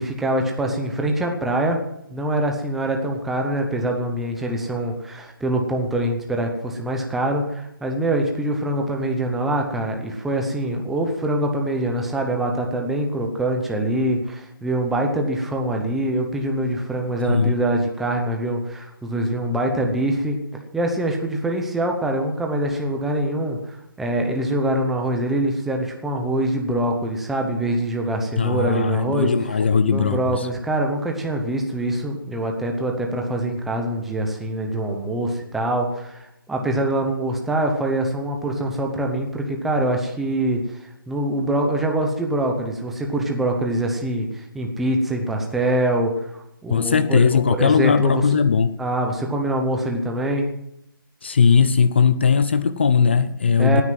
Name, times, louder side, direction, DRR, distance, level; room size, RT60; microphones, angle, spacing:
voice 1, 0.0-1.8 2.1-20.4 20.7-29.3 29.9-48.4 48.8-50.5 53.6-53.8, right 1 dB, ahead, 2 dB, 0.8 m, -24 dB
voice 2, 28.4-30.5 46.7-48.7 51.2-53.8, left 6 dB, 30° left, 12 dB, 0.5 m, -18 dB
17.5 x 9.7 x 7.6 m, 0.79 s
hypercardioid pair, 175°, 12 cm